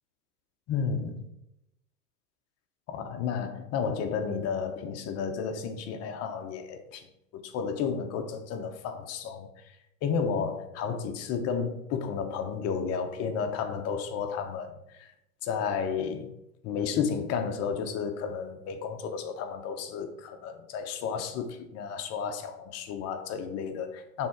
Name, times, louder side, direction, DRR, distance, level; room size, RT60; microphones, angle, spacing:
voice 1, 0.7-1.2 2.9-7.0 7.3-9.5 10.0-15.1 15.4-16.3 16.6-24.3, left 6 dB, 35° left, 7 dB, 0.8 m, -32 dB
6.4 x 3.6 x 4.3 m, 0.85 s
hypercardioid pair, 110°, 47 cm